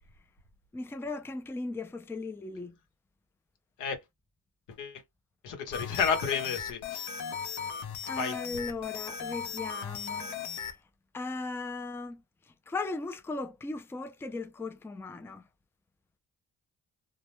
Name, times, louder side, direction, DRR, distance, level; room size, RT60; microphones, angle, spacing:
voice 1, 0.7-2.8 7.5-7.7 8.0-10.7 11.1-15.4, left 3 dB, 10° left, 0.4 m, -38 dB
voice 2, 4.7-5.0 5.4-7.2 8.1-8.4, left 6 dB, 85° left, 1.0 m, -31 dB
sound 1, 5.7-10.8, left 7 dB, 70° left, 0.7 m, -37 dB
2.2 x 2.1 x 3.0 m
cardioid pair, 90°, 30 cm